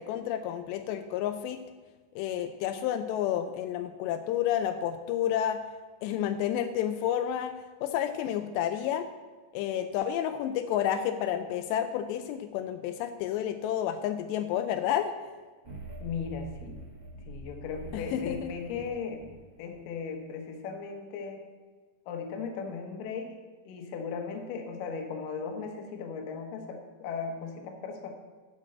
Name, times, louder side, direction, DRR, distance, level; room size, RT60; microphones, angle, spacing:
voice 1, 0.0-1.6 2.2-5.6 6.0-7.5 7.8-9.1 9.5-15.1 17.9-18.5, left 10 dB, 85° left, 8 dB, 2.7 m, -30 dB
sound 1, 15.6-19.8, right 1 dB, 25° right, 0.8 m, -44 dB
voice 2, 16.0-16.8 17.3-19.2 19.6-21.4 22.1-23.3 23.7-28.1, left 5 dB, 65° left, 4 dB, 2.4 m, -37 dB
9.9 x 6.1 x 7.6 m, 1.4 s
omnidirectional pair, 5.0 m